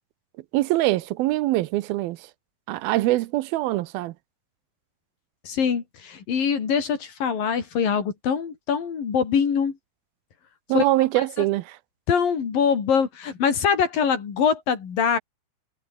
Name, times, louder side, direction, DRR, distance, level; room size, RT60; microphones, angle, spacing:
voice 1, 0.5-2.3 2.7-4.1 10.7-11.8, right 17 dB, 85° right, 2.6 m, -23 dB
voice 2, 5.4-9.8 10.7-10.9 11.2-11.3 12.1-15.2, left 7 dB, 65° left, 5.2 m, -23 dB
omnidirectional pair, 4.4 m